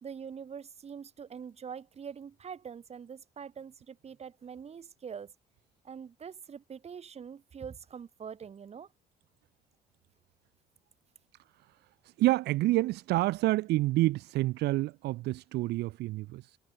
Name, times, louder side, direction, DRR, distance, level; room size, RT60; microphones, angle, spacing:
voice 1, 0.0-5.3 5.8-8.9, right 7 dB, 40° right, 3.9 m, -44 dB
voice 2, 12.0-16.6, right 18 dB, 80° right, 0.9 m, -28 dB
cardioid pair, 110°, 17 cm